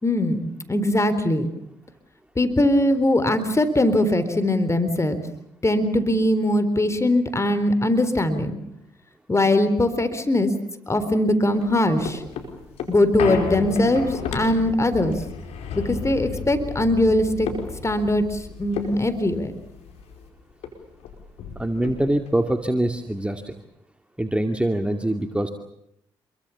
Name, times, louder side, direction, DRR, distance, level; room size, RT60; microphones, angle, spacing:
voice 1, 0.0-1.5 2.4-5.2 5.6-8.5 9.3-10.5 10.9-12.2 12.9-15.2 15.8-17.5 17.8-19.5, left 1 dB, 25° left, 11 dB, 3.9 m, -21 dB
sound 1, 11.6-20.3 20.6-20.7 21.0-22.4 22.8-22.9, left 6 dB, 75° left, 4.9 m, -33 dB
voice 2, 21.6-23.5 24.2-25.5, right 1 dB, 10° right, 5 dB, 2.4 m, -24 dB
27.5 x 23.5 x 7.2 m, 0.77 s
hypercardioid pair, 50°, 11 cm